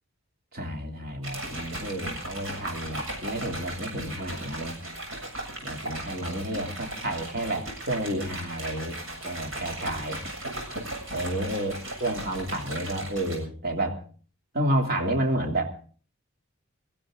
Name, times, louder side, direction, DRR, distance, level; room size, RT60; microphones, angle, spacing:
voice 1, 0.5-4.8 5.6-10.2 11.1-11.7 12.0-14.0 14.5-15.8, right 1 dB, 50° right, 3 dB, 3.0 m, -30 dB
sound 1, 1.2-13.4, right 1 dB, 80° right, 7.3 m, -37 dB
22.0 x 15.5 x 3.8 m, 0.42 s
head